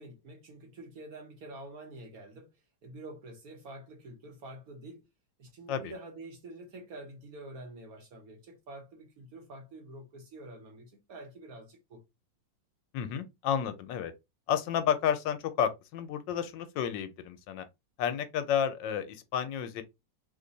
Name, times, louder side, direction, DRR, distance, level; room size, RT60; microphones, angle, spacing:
voice 1, 0.0-5.1 5.4-12.0, right 1 dB, 60° right, 1.1 m, -47 dB
voice 2, 12.9-14.1 14.5-17.7 18.0-19.8, left 8 dB, 80° left, 1.3 m, -31 dB
3.1 x 2.2 x 3.8 m
omnidirectional pair, 2.0 m